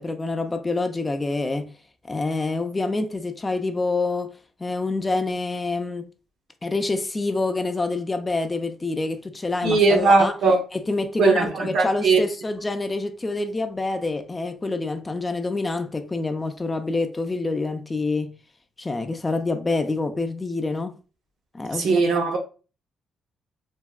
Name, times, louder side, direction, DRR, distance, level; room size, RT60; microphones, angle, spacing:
voice 1, 0.0-1.7 2.1-4.3 4.6-6.1 6.6-10.3 10.7-18.3 18.8-21.0 21.5-22.2, left 3 dB, 20° left, 0.3 m, -27 dB
voice 2, 9.6-10.6 11.2-12.2 21.7-22.4, right 3 dB, 75° right, 0.7 m, -19 dB
3.4 x 2.1 x 2.2 m
cardioid pair, 90°, 0 cm